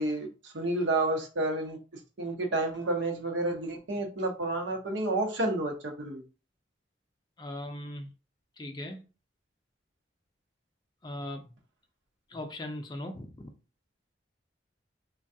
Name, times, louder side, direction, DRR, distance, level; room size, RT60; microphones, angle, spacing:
voice 1, 0.0-1.8 2.2-6.2, right 2 dB, 85° right, 0.8 m, -30 dB
voice 2, 7.4-8.1 8.6-9.0 11.0-11.4 12.3-13.5, left 1 dB, 25° left, 0.3 m, -39 dB
3.3 x 2.2 x 2.7 m
head